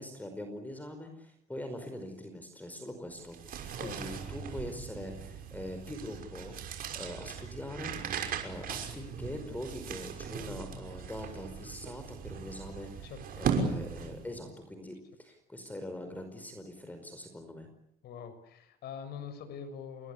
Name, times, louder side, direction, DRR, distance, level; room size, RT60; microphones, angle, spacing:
voice 1, 0.0-6.5 6.9-13.1 13.4-17.7, left 1 dB, 10° left, 7 dB, 5.0 m, -43 dB
sound 1, 3.2-14.4, right 6 dB, 60° right, 6.1 m, -38 dB
voice 2, 13.0-13.4 18.0-20.1, left 7 dB, 75° left, 10 dB, 6.6 m, -44 dB
29.0 x 22.0 x 8.6 m, 0.76 s
cardioid pair, 110°, 17 cm